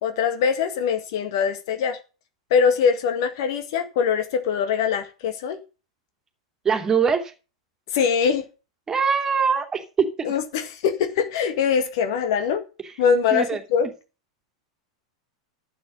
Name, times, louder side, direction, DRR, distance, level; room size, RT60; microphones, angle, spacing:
voice 1, 0.0-2.0 2.5-5.6 7.9-8.4 10.2-12.6 13.0-13.9, left 6 dB, 55° left, 1.8 m, -22 dB
voice 2, 6.6-7.3 8.9-10.1 13.3-13.6, right 6 dB, 20° right, 2.8 m, -22 dB
12.0 x 8.5 x 5.3 m
figure-of-eight pair, 90°, 3 cm